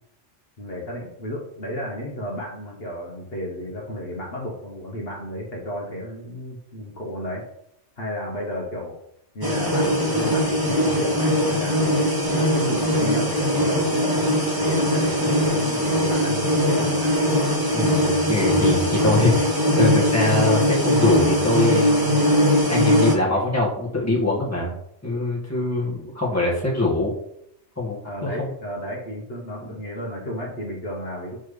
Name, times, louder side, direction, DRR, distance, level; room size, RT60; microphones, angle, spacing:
voice 1, 0.6-7.5 8.0-8.9 9.3-11.9 12.3-14.3 14.6-17.2 28.0-31.4, equal, 55° left, -3 dB, 1.3 m, -33 dB
sound 1, 9.4-23.1, equal, 20° right, 1.1 m, -20 dB
voice 2, 17.7-19.5 19.8-22.2 22.6-24.7 25.0-27.1 27.8-28.5 29.6-29.7, left 2 dB, 15° left, -5 dB, 1.7 m, -23 dB
6.9 x 4.4 x 3.2 m, 0.75 s
omnidirectional pair, 1.2 m